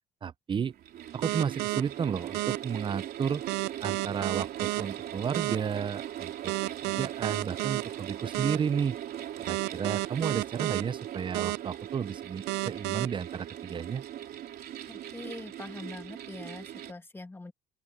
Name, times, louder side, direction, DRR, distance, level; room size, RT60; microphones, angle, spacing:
voice 1, 0.2-0.7 1.1-3.4 3.8-6.5 6.8-9.0 9.4-14.0, right 7 dB, 30° right, 0.5 m, -32 dB
sound 1, 0.7-16.9, right 11 dB, 65° right, 3.3 m, -40 dB
sound 2, 1.2-1.8 2.3-2.6 3.5-4.8 5.3-5.6 6.5-7.8 8.3-8.6 9.5-10.8 11.3-11.6 12.5-13.1, right 23 dB, 90° right, 0.4 m, -30 dB
voice 2, 14.9-17.5, left 2 dB, 15° left, 1.8 m, -43 dB
open air
cardioid pair, 110°, 17 cm